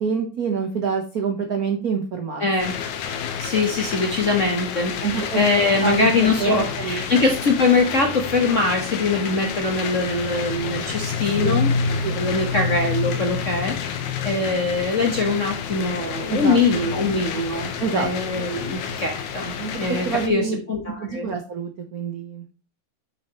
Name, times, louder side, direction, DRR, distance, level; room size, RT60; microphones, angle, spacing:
voice 1, 0.0-2.5 5.0-5.4 5.8-6.1 6.4-7.0 11.4-11.7 12.0-12.2 16.3-16.9 17.8-18.1 19.6-20.6 21.0-22.4, right 6 dB, 80° right, 3 dB, 0.8 m, -26 dB
voice 2, 2.4-2.7 3.4-11.7 12.1-13.7 14.2-21.3, left 3 dB, 45° left, 2 dB, 1.0 m, -22 dB
sound 1, 2.6-20.3, left 6 dB, 80° left, 2.5 m, -29 dB
8.9 x 6.4 x 3.0 m, 0.35 s
omnidirectional pair, 3.3 m